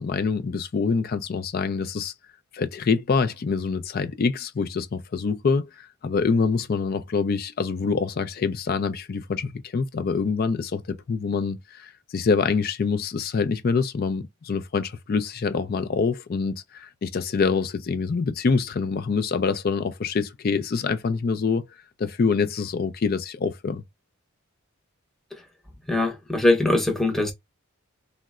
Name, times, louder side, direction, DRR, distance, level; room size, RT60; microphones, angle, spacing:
voice 1, 0.0-2.1 2.5-21.6 22.0-23.8, left 5 dB, 45° left, 0.4 m, -25 dB
voice 2, 25.9-27.3, left 2 dB, ahead, 0.6 m, -22 dB
3.8 x 2.1 x 2.3 m
head